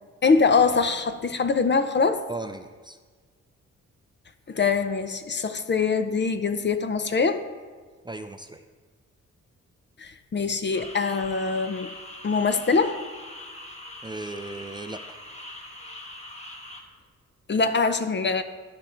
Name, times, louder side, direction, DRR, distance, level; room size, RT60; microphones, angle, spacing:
voice 1, 0.2-2.2 4.5-7.4 10.0-11.9 12.2-13.0 17.5-18.4, left 4 dB, 40° left, 9 dB, 0.7 m, -23 dB
voice 2, 2.3-3.0 8.0-8.6 14.0-15.2, right 2 dB, 15° right, 7 dB, 0.5 m, -36 dB
sound 1, 10.7-16.8, left 1 dB, 25° left, 1.3 m, -42 dB
12.0 x 5.2 x 4.4 m, 1.5 s
cardioid pair, 70°, 29 cm